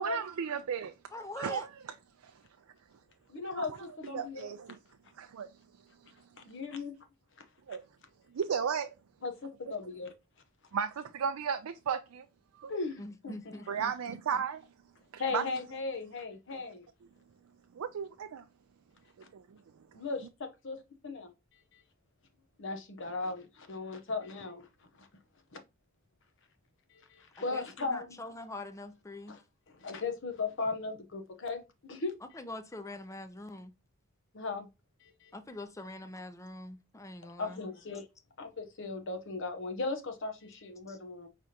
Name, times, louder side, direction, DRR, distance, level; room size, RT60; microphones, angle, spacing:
voice 1, 0.0-0.9 1.4-1.7 3.4-3.8 4.1-4.8 5.2-5.5 7.7-7.8 8.3-8.9 10.7-12.3 12.6-12.7 13.7-14.7 15.1-15.5 17.7-18.4 19.3-19.6, right 7 dB, 80° right, 0.4 m, -34 dB
voice 2, 1.1-1.7 13.0-13.9 27.5-29.4 32.3-33.7 35.3-37.6 40.9-41.0, left 2 dB, 15° left, 0.5 m, -44 dB
voice 3, 3.3-4.5 6.5-6.9 9.2-10.1 12.7-13.6 15.2-16.9 19.9-21.3 22.6-24.7 25.0-25.1 27.1-28.2 29.3-29.4 29.8-32.2 34.3-34.7 35.0-35.3 37.4-38.1 38.4-41.3, left 3 dB, 60° left, 0.8 m, -37 dB
5.0 x 3.4 x 2.8 m
head